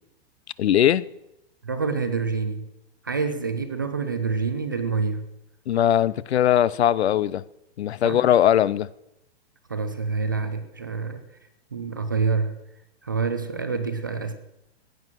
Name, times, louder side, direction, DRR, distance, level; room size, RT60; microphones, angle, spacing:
voice 1, 0.6-1.0 5.7-7.4 7.8-8.9, left 11 dB, 70° left, 0.7 m, -20 dB
voice 2, 1.6-2.6 3.0-5.2 8.0-8.2 9.7-11.2 11.7-12.6 13.0-14.3, right 4 dB, 20° right, 0.4 m, -27 dB
15.5 x 9.2 x 6.2 m
hypercardioid pair, 180°, 33 cm